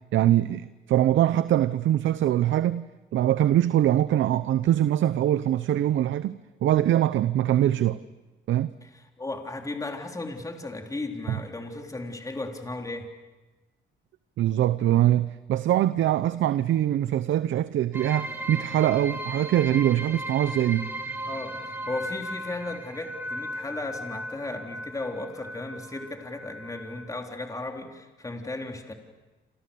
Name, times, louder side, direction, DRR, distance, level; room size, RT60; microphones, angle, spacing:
voice 1, 0.1-2.9 3.1-8.0 8.5-8.7 11.3-11.4 14.4-20.9, right 12 dB, 70° right, 14 dB, 0.8 m, -23 dB
voice 2, 8.8-13.1 21.3-28.9, left 2 dB, 15° left, 3 dB, 3.6 m, -35 dB
sound 1, 17.9-27.2, right 1 dB, 10° right, 5.4 m, -37 dB
28.5 x 27.5 x 7.0 m, 1.2 s
cardioid pair, 90°, 20 cm